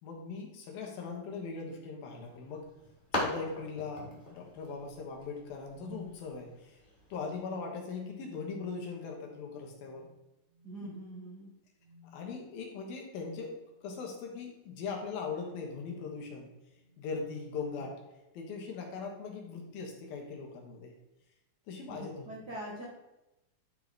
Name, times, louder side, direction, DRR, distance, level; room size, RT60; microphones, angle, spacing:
voice 1, 0.0-2.7 3.1-6.8 7.1-10.1 10.8-10.9 12.0-13.6 13.8-16.5 17.0-18.0 18.3-20.9 21.7-22.3, left 4 dB, 80° left, 0 dB, 3.3 m, -40 dB
sound 1, 2.2-7.3, left 1 dB, 15° left, 1.9 m, -41 dB
sound 2, 2.8-3.0 3.5-4.0 5.6-6.2 7.1-8.4 8.7-9.0 9.7-10.1 10.5-10.8 11.7-12.3 13.5-13.9 14.4-14.5 15.4-18.0 18.9-19.1 19.6-20.6, equal, 20° right, 1.2 m, -57 dB
voice 2, 10.6-11.5 21.9-22.8, right 1 dB, 70° right, -4 dB, 0.9 m, -43 dB
11.5 x 4.2 x 4.7 m, 0.98 s
omnidirectional pair, 4.1 m